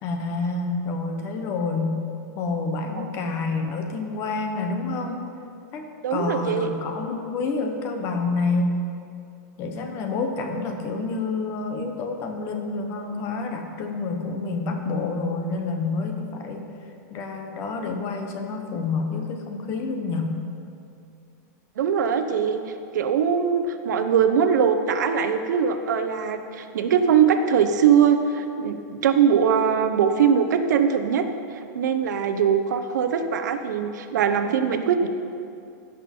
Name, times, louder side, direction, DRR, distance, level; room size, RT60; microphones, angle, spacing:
voice 1, 0.0-2.0 2.4-5.2 5.7-8.8 9.6-16.7 17.1-20.4, left 3 dB, 25° left, 4 dB, 0.8 m, -28 dB
voice 2, 6.0-6.7 21.8-22.6 22.9-31.2 31.7-35.1, right 7 dB, 85° right, 7 dB, 0.8 m, -21 dB
15.5 x 6.0 x 4.4 m, 2.5 s
supercardioid pair, 175°, 9 cm